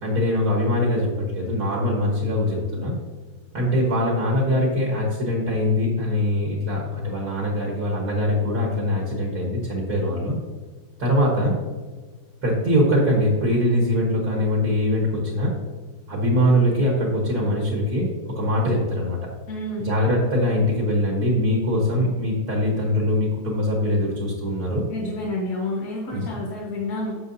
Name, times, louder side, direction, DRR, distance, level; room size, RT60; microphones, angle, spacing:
voice 1, 0.0-3.0 3.5-10.4 11.0-11.5 12.4-15.6 16.1-19.2 19.8-24.8 26.1-26.2, left 1 dB, 50° right, -2 dB, 1.8 m, -22 dB
voice 2, 19.5-19.9 24.9-27.2, left 2 dB, 50° left, -4 dB, 1.6 m, -29 dB
9.3 x 7.0 x 2.7 m, 1.4 s
omnidirectional pair, 2.2 m